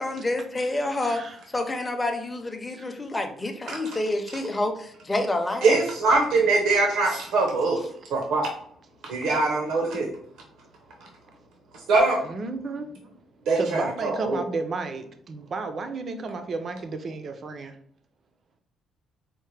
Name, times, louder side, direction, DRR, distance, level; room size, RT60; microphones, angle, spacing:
voice 1, 0.0-1.2 1.5-5.8, left 2 dB, 15° left, 0.5 m, -28 dB
voice 2, 1.0-1.4 2.8-2.9 12.3-12.9 13.5-17.8, right 3 dB, 40° right, 0.4 m, -32 dB
voice 3, 5.6-8.5 9.0-10.1 11.7-12.2 13.5-14.4, right 3 dB, 80° right, 0.7 m, -23 dB
4.4 x 2.1 x 3.2 m
cardioid pair, 135°, 0 cm